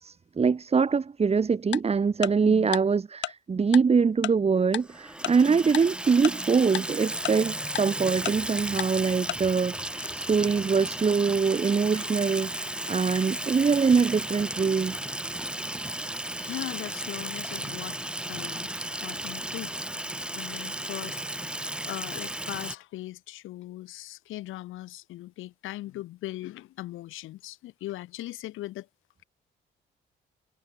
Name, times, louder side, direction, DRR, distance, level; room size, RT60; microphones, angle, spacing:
voice 1, 0.0-9.8 10.1-15.0, right 5 dB, 30° right, 1.3 m, -24 dB
Tick-tock, 1.7-1.8 2.2-2.3 2.7-2.8 3.2-3.3 3.7-3.8 4.2-4.3 4.7-4.8 5.2-5.3 5.7-5.8 6.2-6.3 6.7-6.8 7.2-7.3 7.7-7.8 8.2-8.3 8.8-8.9 9.3-9.4, left 15 dB, 65° left, 0.4 m, -30 dB
Water tap faucet / Sink (filling or washing), 4.8-22.8, right 1 dB, 5° right, 0.8 m, -34 dB
voice 2, 15.6-19.8 20.3-21.2 21.8-28.9, left 16 dB, 90° left, 3.3 m, -39 dB
cardioid pair, 90°, 20 cm